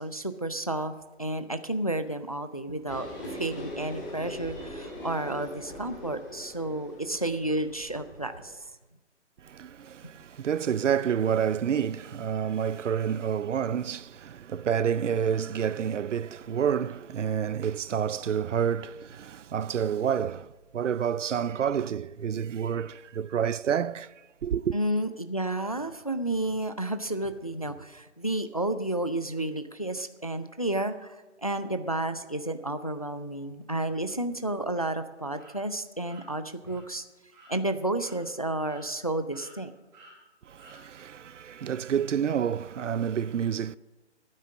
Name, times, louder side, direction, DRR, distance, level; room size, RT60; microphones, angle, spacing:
voice 1, 0.0-8.5 24.7-31.1 31.4-37.0 37.5-39.7, right 1 dB, 35° left, 0.4 m, -31 dB
sound 1, 2.9-8.5, equal, 15° left, 1.6 m, -41 dB
voice 2, 9.4-24.1 24.4-24.8 40.5-43.8, right 8 dB, 80° right, 0.5 m, -29 dB
sound 2, 34.7-34.9 35.3-35.5 36.0-36.2 36.6-36.8 37.3-37.5 38.0-38.2 38.6-39.1 39.3-39.5 39.9-40.1 40.6-40.8, right 2 dB, 20° right, 4.4 m, -53 dB
11.5 x 9.5 x 6.2 m
hypercardioid pair, 170°, 36 cm